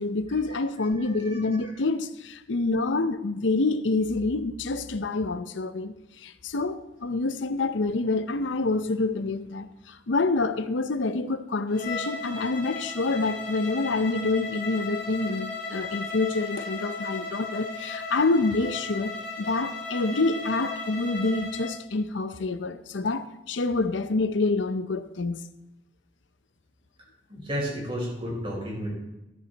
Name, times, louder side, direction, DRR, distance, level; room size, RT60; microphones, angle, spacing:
voice 1, 0.0-19.1 19.4-25.4, left 3 dB, 85° left, 0.7 m, -27 dB
voice 2, 1.0-1.6 27.3-28.9, equal, 30° right, 4.5 m, -32 dB
Bowed string instrument, 11.7-21.8, left 3 dB, 50° left, 2.2 m, -36 dB
13.5 x 9.6 x 4.0 m
head